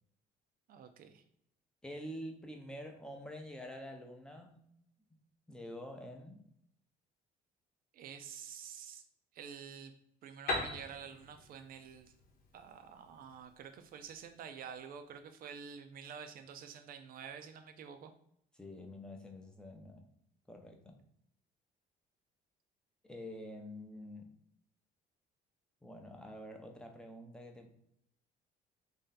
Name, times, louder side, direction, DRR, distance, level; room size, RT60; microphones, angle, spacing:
voice 1, 0.7-1.2 7.9-9.0 9.3-9.9 10.2-12.1 12.5-18.1, right 7 dB, 60° right, 8 dB, 0.5 m, -49 dB
voice 2, 1.8-4.7 5.5-6.4 18.5-20.1 20.5-21.0 23.0-24.3 25.8-27.7, left 1 dB, 5° left, 3 dB, 0.6 m, -47 dB
Piano, 10.5-14.1, left 2 dB, 60° left, 0.9 m, -41 dB
3.2 x 2.7 x 3.9 m, 0.72 s
cardioid pair, 110°, 17 cm